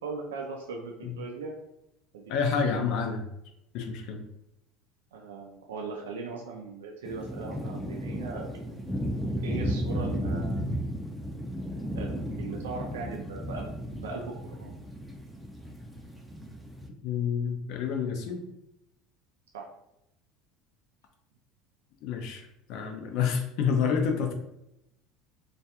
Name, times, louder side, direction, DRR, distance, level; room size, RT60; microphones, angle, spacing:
voice 1, 0.0-1.5 2.1-2.2 5.1-8.6 9.4-10.7 11.9-13.7 14.0-14.7 19.5-19.7, right 4 dB, 85° right, 0 dB, 0.3 m, -39 dB
voice 2, 2.3-3.3 3.7-4.2 17.0-18.4 22.0-24.3, left 6 dB, 65° left, 4 dB, 0.5 m, -28 dB
sound 1, 7.1-16.9, equal, ahead, 0.5 m, -34 dB
2.3 x 2.2 x 2.8 m, 0.83 s
hypercardioid pair, 85°, 0 cm